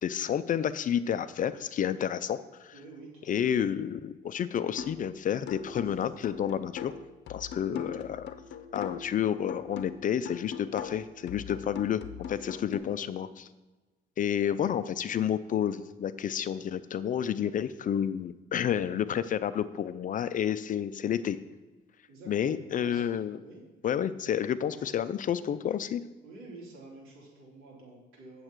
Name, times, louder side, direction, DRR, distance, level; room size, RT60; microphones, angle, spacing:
voice 1, 0.0-2.7 3.3-6.9 7.3-8.3 8.7-12.0 12.3-13.5 14.2-21.4 22.3-23.4 23.8-26.0, left 9 dB, 40° left, 13 dB, 0.4 m, -30 dB
voice 2, 2.7-3.3 5.8-5.9 22.1-23.0 23.4-23.6 24.7-24.8 26.2-28.4, right 2 dB, 80° right, -3 dB, 3.5 m, -49 dB
sound 1, 4.8-5.1 5.5-9.2 9.5-12.8, left 7 dB, 55° left, 0.8 m, -41 dB
8.7 x 7.5 x 4.6 m, 1.2 s
cardioid pair, 120°, 21 cm